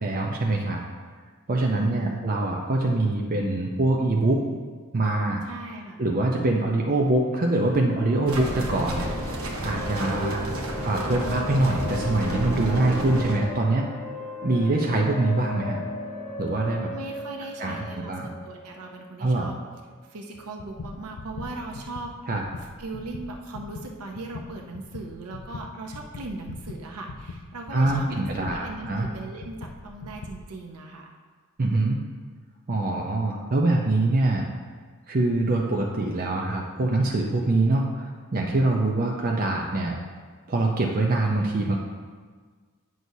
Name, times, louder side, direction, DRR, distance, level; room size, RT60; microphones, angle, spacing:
voice 1, 0.0-0.8 1.5-4.6 4.9-5.4 6.0-9.1 9.6-10.4 10.8-13.9 14.4-15.8 16.4-16.9 17.6-18.3 19.2-19.5 22.3-22.4 27.7-29.1 31.6-32.0 32.7-34.5 35.1-40.0 40.5-41.8, right 2 dB, 40° right, 0 dB, 0.6 m, -24 dB
voice 2, 1.7-2.2 5.4-6.0 16.9-19.6 20.1-22.1 22.6-31.1, right 2 dB, 85° right, 2 dB, 0.7 m, -38 dB
sound 1, 7.9-19.5, left 2 dB, 25° left, 1.3 m, -37 dB
sound 2, 8.3-13.4, right 1 dB, 65° right, 1.1 m, -31 dB
sound 3, 20.3-30.5, left 3 dB, 85° left, 0.5 m, -40 dB
9.3 x 6.2 x 2.7 m, 1.5 s
head